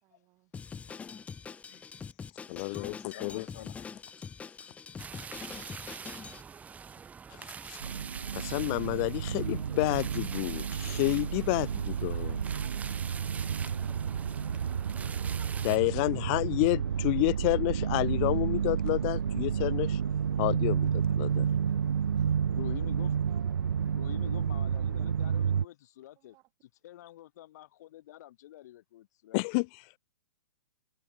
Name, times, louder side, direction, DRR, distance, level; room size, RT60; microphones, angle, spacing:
voice 1, 0.0-0.5 12.5-14.3 21.6-22.4 23.0-23.7 26.1-26.5 29.4-29.5, right 21 dB, 30° right, 5.0 m, -61 dB
Drum kit, 0.5-6.4, left 6 dB, 10° left, 1.4 m, -44 dB
voice 2, 2.5-3.5 7.7-7.8 8.3-12.4 15.6-20.0 20.4-21.5 29.3-29.7, left 34 dB, 25° left, 0.3 m, -29 dB
voice 3, 3.1-3.8 22.5-23.2 23.9-26.4 26.8-29.4, left 14 dB, 45° left, 1.8 m, -47 dB
sound 1, 5.0-15.8, right 6 dB, 10° right, 1.7 m, -45 dB
sound 2, 7.8-25.6, right 7 dB, 65° right, 0.4 m, -30 dB
figure-of-eight pair, 115°, 13 cm